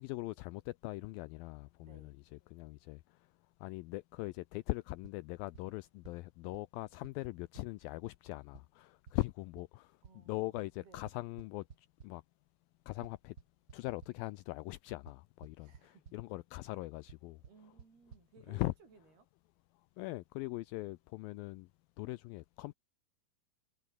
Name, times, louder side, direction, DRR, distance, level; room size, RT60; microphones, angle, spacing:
voice 1, 0.0-2.0 2.5-3.0 3.6-9.9 10.3-11.6 12.0-12.2 12.9-13.3 13.7-15.7 16.1-17.4 18.5-18.7 20.0-21.7 22.0-22.7, left 20 dB, 80° left, 2.3 m, -40 dB
voice 2, 1.8-2.2 10.0-11.1 15.6-16.2 17.4-19.3, right 5 dB, 80° right, 8.2 m, -62 dB
sound 1, 5.0-5.1 5.5-5.6 6.0-6.1 6.5-6.6 7.0-7.1 7.5-7.6 8.0-8.1 8.5-8.6 9.1-9.2 9.6-9.7 10.0-10.1 10.6-10.7 11.1-12.1 13.0-14.1 15.1-15.2 15.4-15.8 16.0-16.1 17.1-17.2 17.4-17.5 17.8-17.9 18.1-18.2, right 7 dB, 50° right, 1.2 m, -53 dB
omnidirectional pair, 4.5 m